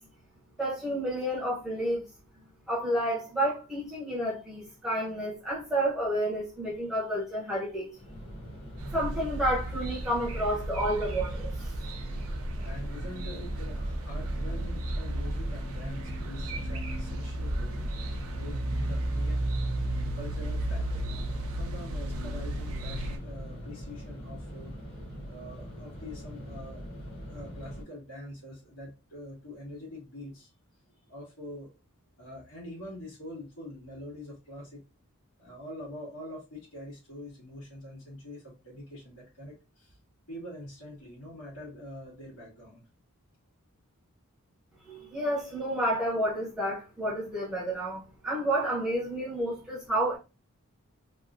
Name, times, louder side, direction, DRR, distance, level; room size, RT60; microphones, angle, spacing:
voice 1, 0.6-2.1 2.7-8.0 8.9-11.5 44.8-50.2, right 1 dB, 5° right, 0.7 m, -30 dB
sound 1, 7.9-27.8, equal, 25° left, 1.2 m, -43 dB
sound 2, 8.8-23.2, right 1 dB, 70° right, 0.6 m, -33 dB
voice 2, 12.6-18.0 18.3-19.4 20.1-21.0 21.6-24.7 25.3-26.8 27.3-30.5 31.1-31.7 32.2-34.8 35.4-40.0 40.3-42.8, left 1 dB, 85° left, 1.9 m, -44 dB
3.5 x 2.5 x 2.5 m
head